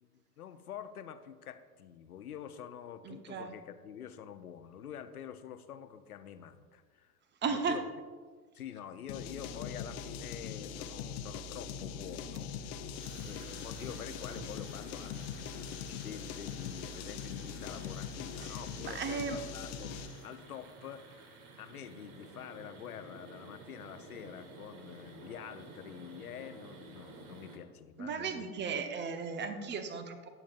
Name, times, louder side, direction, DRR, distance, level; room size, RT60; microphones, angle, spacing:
voice 1, 0.0-7.1 7.5-7.9 8.5-12.9 13.2-21.3 21.6-28.6, left 9 dB, 75° left, 11 dB, 0.8 m, -47 dB
voice 2, 3.0-3.5 7.4-7.8 18.4-18.5 18.8-19.4 28.0-30.3, right 5 dB, 25° right, 8 dB, 0.9 m, -35 dB
sound 1, 9.1-20.2, left 6 dB, 45° left, 0.8 m, -42 dB
sound 2, 10.9-11.2 12.3-12.5 12.9-27.6, right 3 dB, 45° right, 1.5 m, -53 dB
18.5 x 7.2 x 2.5 m, 1.5 s
figure-of-eight pair, 75°, 45 cm